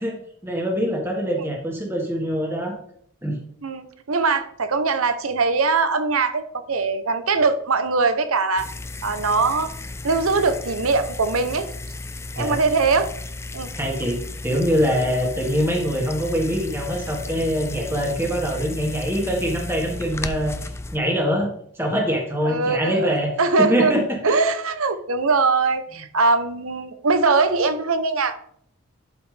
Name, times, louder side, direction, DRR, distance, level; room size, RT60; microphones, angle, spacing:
voice 1, 0.4-2.7 3.2-3.4 12.4-12.6 13.7-20.5 20.9-23.3 23.6-24.4, equal, 10° right, 0 dB, 1.6 m, -24 dB
voice 2, 3.6-8.7 9.0-9.7 10.0-11.7 12.4-13.1 13.5-13.7 22.4-23.1 23.4-23.9 24.2-28.4, right 4 dB, 85° right, 10 dB, 0.9 m, -21 dB
sound 1, 8.6-21.0, left 2 dB, 10° left, 0.3 m, -34 dB
11.5 x 5.0 x 3.4 m, 0.66 s
head